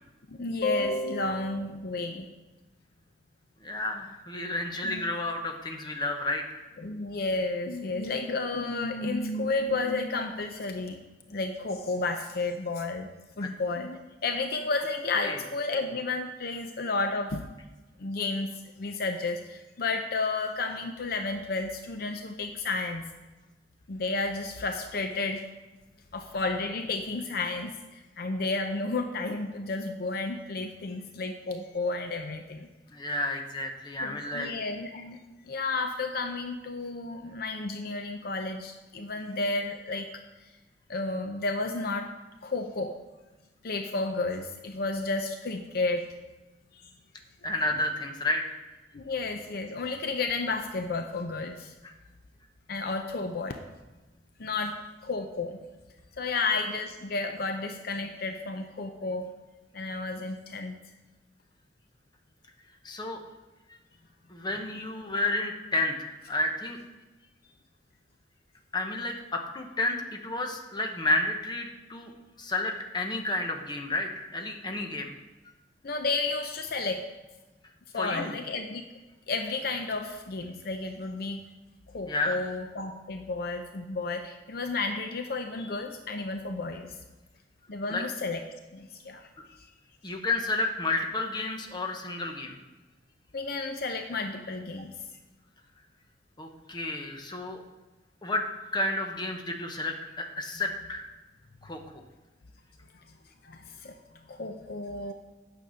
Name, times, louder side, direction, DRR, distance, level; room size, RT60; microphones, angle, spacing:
voice 1, 0.3-2.3 4.8-5.0 6.8-11.0 11.3-13.1 13.4-17.4 18.0-23.1 23.9-25.4 26.1-32.7 34.0-40.1 40.4-40.5 40.9-42.1 42.4-43.0 43.6-46.1 46.7-46.9 47.7-47.8 48.9-51.7 52.7-53.6 54.4-54.8 55.0-55.6 56.2-59.3 59.7-60.8 75.8-77.1 77.9-78.8 79.3-81.4 81.9-87.0 87.7-88.4 88.7-89.3 89.6-89.7 90.1-90.2 93.3-94.9 103.4-105.1, left 3 dB, 55° left, 5 dB, 0.6 m, -32 dB
voice 2, 3.6-6.7 15.2-15.4 32.9-34.5 47.4-48.4 62.8-63.2 64.3-66.8 68.7-72.1 72.4-75.1 77.9-78.3 82.1-82.4 87.9-88.0 90.0-92.6 96.4-97.6 98.2-98.4 98.7-101.0 101.6-102.0, left 2 dB, 25° left, 3 dB, 1.0 m, -31 dB
9.2 x 6.8 x 5.6 m, 1.1 s
head